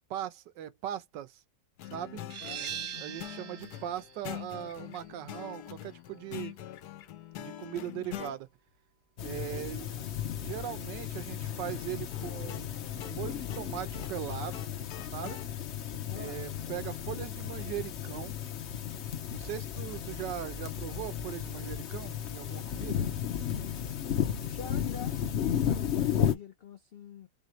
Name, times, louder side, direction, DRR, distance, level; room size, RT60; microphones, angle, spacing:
voice 1, 0.1-1.4 1.9-2.2 2.6-6.6 7.4-8.5 9.2-9.9 10.4-12.7 13.0-14.6 15.1-15.4 16.2-18.4 19.3-23.1, right 11 dB, 85° right, 1.4 m, -39 dB
sound 1, 1.8-8.4 12.1-15.5, left 12 dB, 70° left, 1.1 m, -44 dB
voice 2, 2.1-3.2 9.2-10.1 16.0-16.4 24.4-27.3, left 7 dB, 85° left, 0.5 m, -47 dB
sound 2, 2.3-7.7, right 9 dB, 55° right, 0.7 m, -44 dB
sound 3, 9.2-26.3, left 9 dB, 55° left, 0.8 m, -34 dB
4.2 x 3.5 x 3.0 m
omnidirectional pair, 1.9 m